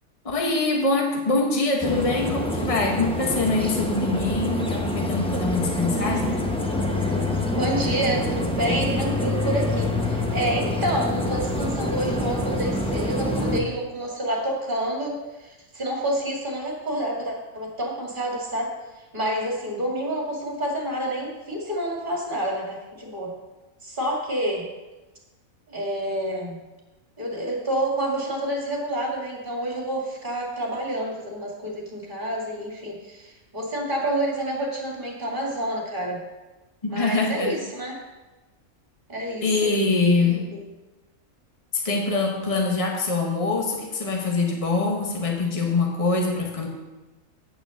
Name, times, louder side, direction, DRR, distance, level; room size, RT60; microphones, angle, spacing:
voice 1, 0.2-6.3 36.8-37.5 39.4-40.5 41.7-46.7, left 3 dB, 25° left, 0 dB, 1.4 m, -24 dB
sound 1, 1.8-13.6, left 1 dB, 5° left, 0.8 m, -26 dB
voice 2, 7.5-18.7 19.1-23.3 23.8-24.6 25.7-26.6 27.2-36.2 36.9-37.9 39.1-39.9 40.2-40.6, right 1 dB, 35° right, -2 dB, 2.4 m, -28 dB
9.1 x 6.1 x 6.5 m, 1.1 s
omnidirectional pair, 1.5 m